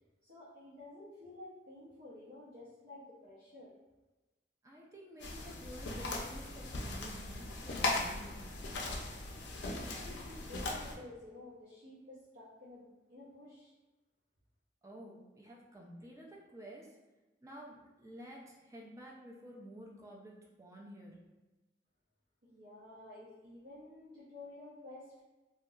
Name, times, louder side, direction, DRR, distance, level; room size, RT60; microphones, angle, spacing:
voice 1, 0.2-3.7 9.9-13.7 22.4-25.2, left 2 dB, 70° right, -10 dB, 0.7 m, -52 dB
voice 2, 4.6-8.5 14.8-17.0 17.4-21.1, equal, 15° right, -2 dB, 0.4 m, -51 dB
sound 1, 5.2-10.9, left 2 dB, 75° left, 0.4 m, -38 dB
2.7 x 2.2 x 2.3 m, 1.1 s
head